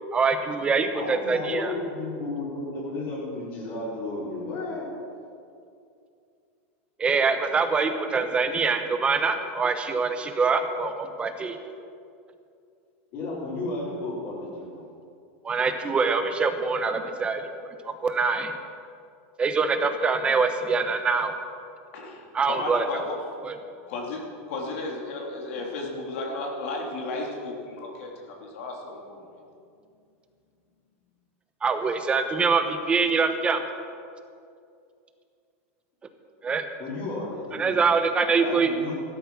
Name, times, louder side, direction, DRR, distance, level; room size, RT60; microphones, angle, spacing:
voice 1, 0.1-1.7 7.0-11.6 15.4-18.5 19.4-21.3 22.3-22.8 23.4-23.5 31.6-33.6 36.4-36.6 37.5-38.7, right 4 dB, 15° right, 7 dB, 1.0 m, -24 dB
voice 2, 0.9-4.9 13.1-14.8 36.8-37.8 38.4-38.9, left 2 dB, 45° left, -9 dB, 4.6 m, -33 dB
voice 3, 21.9-23.1 23.9-24.2 24.5-29.2, left 2 dB, 70° left, -1 dB, 3.0 m, -34 dB
14.5 x 12.5 x 6.1 m, 2.4 s
supercardioid pair, 160°, 7 cm